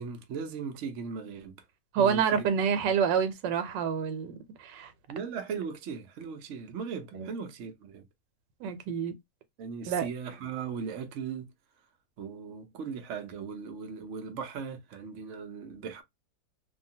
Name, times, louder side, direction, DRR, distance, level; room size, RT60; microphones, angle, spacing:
voice 1, 0.0-1.6 2.0-2.4 5.1-8.0 9.6-11.5 12.2-16.0, right 6 dB, 60° right, 0.8 m, -38 dB
voice 2, 1.9-4.9 7.1-7.3 8.6-9.1 9.9-10.1, right 7 dB, 90° right, 1.3 m, -28 dB
2.8 x 2.3 x 2.6 m
omnidirectional pair, 1.9 m